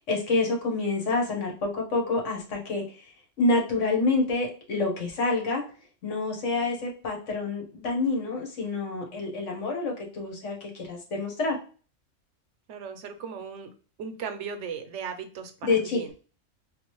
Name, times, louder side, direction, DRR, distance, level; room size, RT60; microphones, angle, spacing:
voice 1, 0.1-2.8 3.4-5.6 6.0-11.6 15.6-16.0, left 3 dB, 75° left, 1 dB, 1.4 m, -27 dB
voice 2, 12.7-13.7 14.0-16.1, right 6 dB, 75° right, 8 dB, 0.9 m, -37 dB
4.0 x 2.4 x 3.0 m, 0.37 s
omnidirectional pair, 1.3 m